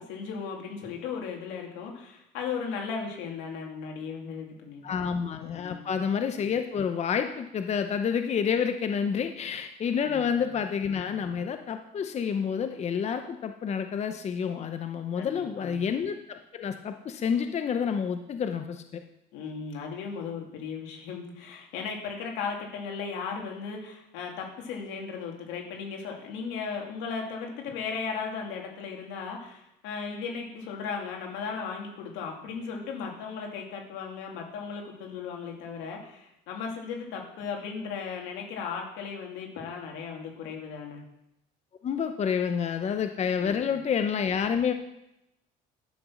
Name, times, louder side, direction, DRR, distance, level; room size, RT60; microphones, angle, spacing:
voice 1, 0.0-5.0 5.5-6.0 10.0-10.5 15.2-15.8 19.3-41.0 43.4-43.6, left 5 dB, 85° left, 1 dB, 2.6 m, -36 dB
voice 2, 4.8-19.0 41.8-44.7, left 7 dB, 40° left, 8 dB, 0.7 m, -29 dB
11.5 x 6.1 x 6.3 m, 0.87 s
cardioid pair, 105°, 18 cm